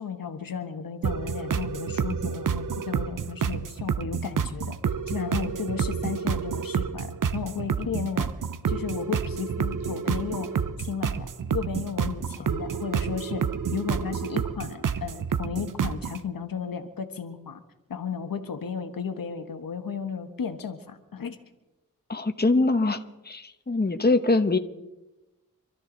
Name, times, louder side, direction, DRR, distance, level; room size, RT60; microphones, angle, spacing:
voice 1, 0.0-4.8 5.1-8.3 8.7-17.6 17.9-21.4, left 6 dB, 85° left, 6 dB, 1.4 m, -34 dB
sound 1, 1.0-16.2, right 6 dB, 70° right, 0.8 m, -29 dB
voice 2, 22.1-24.6, left 2 dB, 30° left, 7 dB, 1.2 m, -23 dB
27.0 x 13.0 x 4.0 m, 1.0 s
cardioid pair, 55°, 33 cm